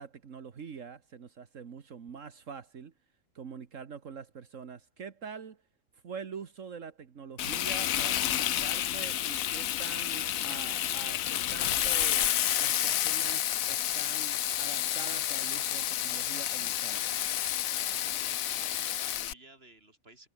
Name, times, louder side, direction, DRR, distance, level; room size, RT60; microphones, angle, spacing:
voice 1, 0.0-2.9 3.4-5.6 6.0-12.3 12.6-17.2, right 6 dB, 70° right, 1.8 m, -45 dB
Frying (food), 7.4-19.3, left 12 dB, 85° left, 1.2 m, -30 dB
voice 2, 17.9-20.3, right 2 dB, 45° right, 8.1 m, -54 dB
omnidirectional pair, 1.4 m